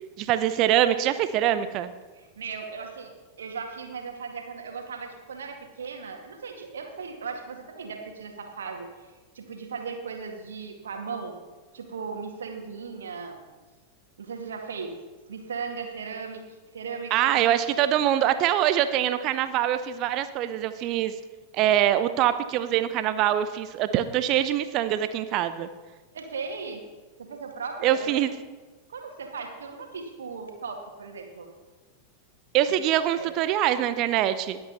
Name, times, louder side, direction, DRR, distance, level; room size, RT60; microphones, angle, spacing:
voice 1, 0.2-1.9 17.1-21.1 21.5-25.7 27.8-28.3 32.5-34.6, right 11 dB, 40° right, 12 dB, 0.6 m, -24 dB
voice 2, 2.1-3.1 3.4-8.9 9.3-11.4 11.7-13.4 14.2-14.9 15.3-16.4 16.7-17.4 20.8-20.9 26.1-26.8 27.2-28.2 28.9-31.5 33.1-33.3, right 5 dB, 65° right, 3 dB, 2.0 m, -37 dB
20.0 x 8.0 x 4.1 m, 1.3 s
figure-of-eight pair, 90°, 0 cm